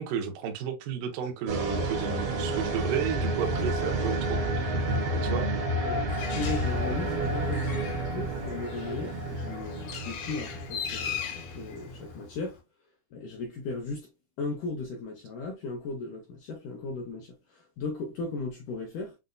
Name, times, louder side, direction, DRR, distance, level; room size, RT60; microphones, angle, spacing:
voice 1, 0.0-4.2 4.6-4.8 5.1-5.5, right 8 dB, 75° right, 1.9 m, -32 dB
sound 1, 1.5-12.3, right 1 dB, 55° right, 1.8 m, -30 dB
voice 2, 5.8-12.6 13.1-14.1 14.4-19.2, left 3 dB, 85° left, 1.8 m, -36 dB
Bird, 6.1-12.6, left 7 dB, 70° left, 2.5 m, -39 dB
7.4 x 2.6 x 2.2 m
omnidirectional pair, 4.9 m